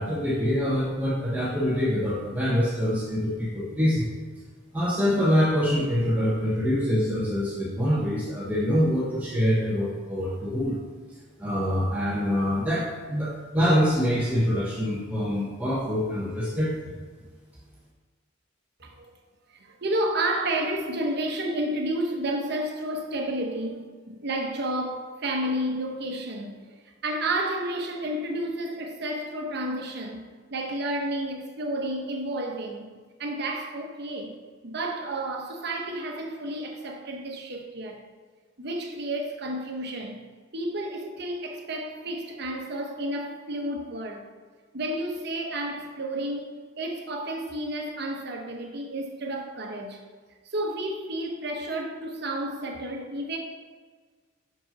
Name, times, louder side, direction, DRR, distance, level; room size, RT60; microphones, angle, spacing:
voice 1, 0.0-4.1 4.7-10.8 11.4-16.9, equal, 10° right, 1.0 m, -25 dB
voice 2, 19.5-26.7 27.0-30.2 30.5-32.9 33.2-34.3 34.6-38.0 38.6-40.2 40.5-44.3 44.7-50.0 50.5-53.4, right 1 dB, 55° right, 1.0 m, -31 dB
5.8 x 5.3 x 5.2 m
head